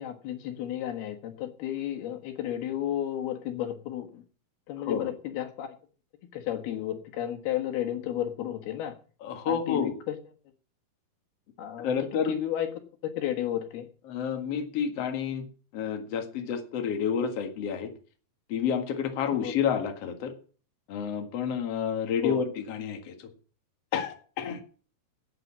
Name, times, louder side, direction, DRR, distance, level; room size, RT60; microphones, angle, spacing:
voice 1, 0.0-4.2 4.7-5.8 6.3-9.0 9.5-10.2 11.6-12.7 13.0-13.9 19.3-19.5 22.2-22.4, left 11 dB, 85° left, 4 dB, 3.5 m, -32 dB
voice 2, 9.2-9.9 11.8-12.3 14.1-15.4 15.7-17.9 18.5-20.3 20.9-23.3 23.9-24.6, left 7 dB, 50° left, 5 dB, 2.4 m, -29 dB
9.2 x 8.7 x 8.4 m, 0.40 s
omnidirectional pair, 4.4 m